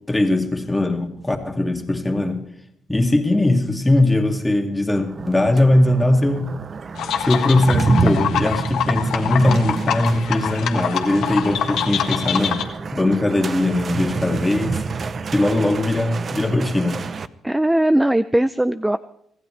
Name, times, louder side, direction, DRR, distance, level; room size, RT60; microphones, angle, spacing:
voice 1, 0.1-2.4 2.9-6.5 7.2-12.6 12.9-14.8 15.3-17.0, left 1 dB, 10° left, 3 dB, 2.3 m, -20 dB
sound 1, 5.0-17.3, right 5 dB, 45° right, 0.7 m, -28 dB
sound 2, 7.0-12.6, left 9 dB, 80° left, 1.7 m, -25 dB
voice 2, 17.4-19.0, right 1 dB, 5° right, 13 dB, 0.5 m, -19 dB
25.5 x 15.0 x 3.3 m, 0.72 s
cardioid pair, 90°, 0 cm